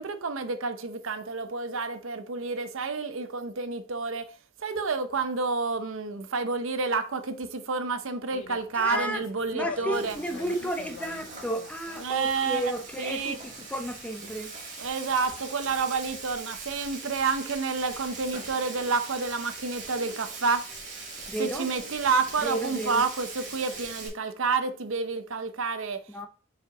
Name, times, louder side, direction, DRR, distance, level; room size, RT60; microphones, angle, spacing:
voice 1, 0.0-4.3 4.6-10.2 12.0-12.7 13.0-13.4 14.8-20.6 21.4-26.0, right 4 dB, 75° right, 0.7 m, -29 dB
sound 1, 8.3-14.5, left 6 dB, 70° left, 0.3 m, -43 dB
voice 2, 8.7-9.2 9.5-14.5 21.3-21.6 22.4-23.0 26.1-26.3, right 1 dB, 5° left, 0.5 m, -32 dB
Frying (food), 9.9-24.1, right 3 dB, 35° right, 1.9 m, -41 dB
5.3 x 4.7 x 3.7 m
head